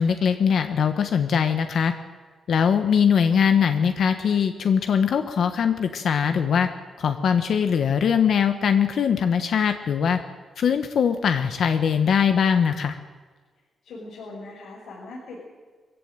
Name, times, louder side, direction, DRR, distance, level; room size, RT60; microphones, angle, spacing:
voice 1, 0.0-1.9 2.5-6.7 7.0-10.2 10.6-13.0, left 7 dB, 55° left, 8 dB, 1.3 m, -21 dB
voice 2, 13.8-15.4, left 2 dB, 75° left, -5 dB, 6.1 m, -40 dB
23.0 x 15.5 x 9.1 m, 1.5 s
wide cardioid pair, 170°, 0 cm